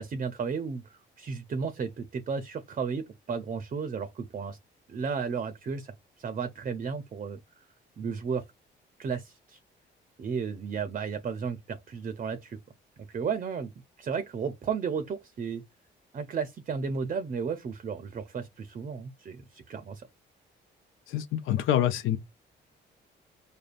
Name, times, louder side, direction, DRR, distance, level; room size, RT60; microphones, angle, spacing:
voice 1, 0.0-4.6 4.9-7.4 8.0-8.4 9.0-9.6 10.2-12.6 13.1-13.7 14.0-15.6 16.1-20.1, right 6 dB, 40° right, 0.6 m, -33 dB
voice 2, 21.1-22.2, left 11 dB, 85° left, 0.6 m, -26 dB
5.0 x 2.2 x 2.5 m
cardioid pair, 90°, 20 cm